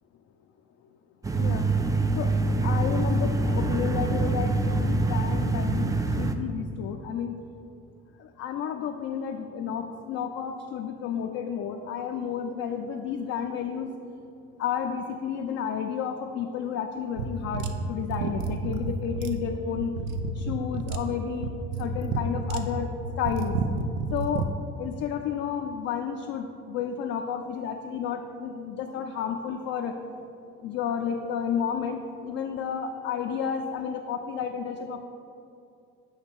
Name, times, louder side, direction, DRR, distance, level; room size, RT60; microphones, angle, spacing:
sound 1, 1.2-6.3, right 2 dB, 10° right, 0.4 m, -25 dB
voice 1, 1.4-1.7 2.2-2.3 2.6-7.3 8.2-13.9 14.6-19.9 20.3-23.6 24.1-24.5 24.8-29.9 30.6-35.1, left 7 dB, 50° left, 3 dB, 0.5 m, -31 dB
sound 2, 17.2-24.5, right 3 dB, 75° right, 0.6 m, -30 dB
7.9 x 2.9 x 5.9 m, 2.6 s
hypercardioid pair, 65°, 32 cm